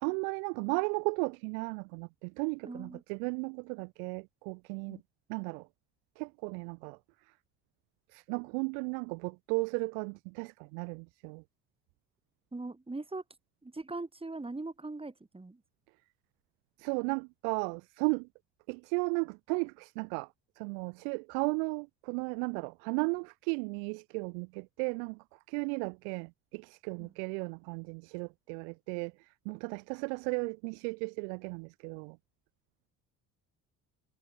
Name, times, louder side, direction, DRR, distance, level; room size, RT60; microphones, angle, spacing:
voice 1, 0.0-5.0 5.3-5.7 6.2-7.0 8.1-11.4 16.8-18.3 18.7-20.3 20.6-25.2 25.5-29.1 29.4-32.2, right 40 dB or more, 80° right, 1.7 m, -35 dB
voice 2, 2.6-3.0 4.9-5.0 12.5-13.2 13.6-15.6 27.0-27.1, right 2 dB, 10° right, 2.0 m, -41 dB
hypercardioid pair, 60°, 45 cm